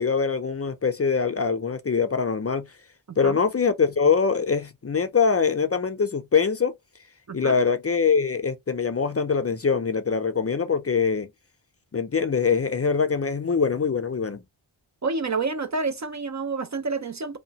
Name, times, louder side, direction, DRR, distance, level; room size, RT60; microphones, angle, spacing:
voice 1, 0.0-2.7 3.2-6.7 7.3-11.3 11.9-14.4, left 5 dB, 30° left, 0.5 m, -23 dB
voice 2, 3.1-3.4 7.3-7.6 15.0-17.4, right 4 dB, 35° right, 0.5 m, -29 dB
2.8 x 2.2 x 2.8 m
cardioid pair, 40°, 49 cm